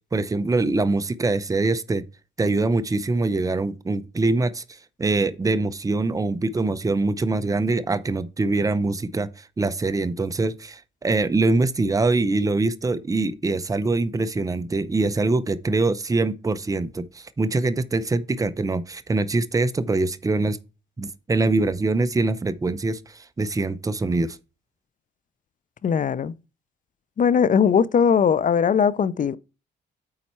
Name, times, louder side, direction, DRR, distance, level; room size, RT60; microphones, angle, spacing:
voice 1, 0.1-2.0 2.4-4.6 5.0-20.6 21.0-24.4, right 3 dB, 15° right, 0.6 m, -23 dB
voice 2, 25.8-26.3 27.2-29.4, left 7 dB, 40° left, 0.6 m, -19 dB
8.7 x 4.2 x 4.5 m
cardioid pair, 90°, 20 cm